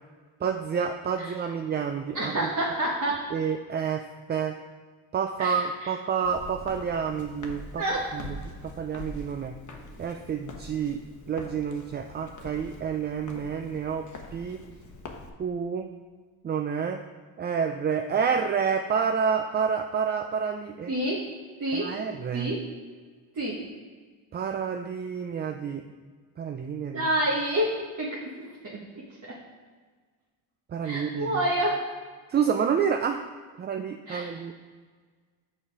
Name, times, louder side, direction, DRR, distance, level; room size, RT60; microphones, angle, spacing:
voice 1, 0.4-2.5 3.3-4.0 4.3-4.5 5.1-7.8 8.1-9.5 10.0-11.0 11.3-14.0 14.3-14.6 15.4-15.9 16.4-17.0 17.4-20.9 21.7-22.5 24.3-25.8 26.4-27.1 30.7-31.4 32.3-33.2 33.6-34.5, right 6 dB, 25° right, 5 dB, 0.3 m, -29 dB
voice 2, 2.1-3.2 5.4-5.9 7.8-8.1 20.9-21.3 21.6-21.9 22.3-22.6 23.3-23.6 26.9-28.8 29.2-29.4 30.8-31.8 34.1-34.4, right 1 dB, 40° right, -4 dB, 1.5 m, -28 dB
Walk footsteps, 6.2-15.3, left 2 dB, 40° left, 1.1 m, -44 dB
6.2 x 5.6 x 4.7 m, 1.5 s
supercardioid pair, 75°, 44 cm